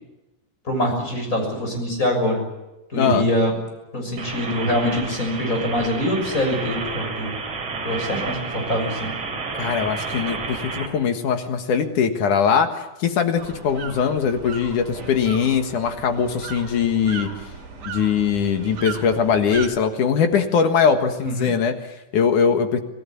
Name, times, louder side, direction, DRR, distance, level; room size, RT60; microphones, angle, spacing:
voice 1, 0.7-2.4 2.9-3.6 3.9-7.4 7.8-9.1 21.2-21.4, equal, 25° left, 3 dB, 6.9 m, -24 dB
sound 1, 4.2-10.9, right 4 dB, 50° right, 4.2 m, -30 dB
voice 2, 9.6-17.3 17.9-22.8, left 6 dB, 70° left, 6 dB, 3.1 m, -21 dB
sound 2, 13.4-19.7, right 6 dB, 70° right, 5.5 m, -36 dB
26.5 x 17.5 x 9.6 m, 0.99 s
omnidirectional pair, 3.7 m